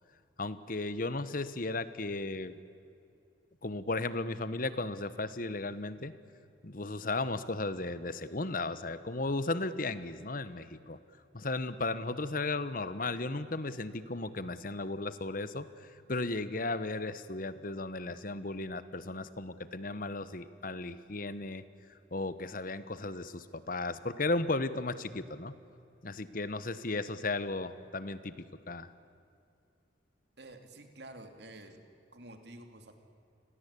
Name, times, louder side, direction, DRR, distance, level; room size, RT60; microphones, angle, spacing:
voice 1, 0.4-2.6 3.6-6.2 6.6-11.0 11.3-21.6 22.1-25.6 26.0-28.9, left 2 dB, 50° left, 14 dB, 1.1 m, -35 dB
voice 2, 30.4-31.8 32.1-32.9, right 1 dB, 60° right, 6 dB, 2.8 m, -49 dB
29.0 x 21.0 x 8.4 m, 2.5 s
head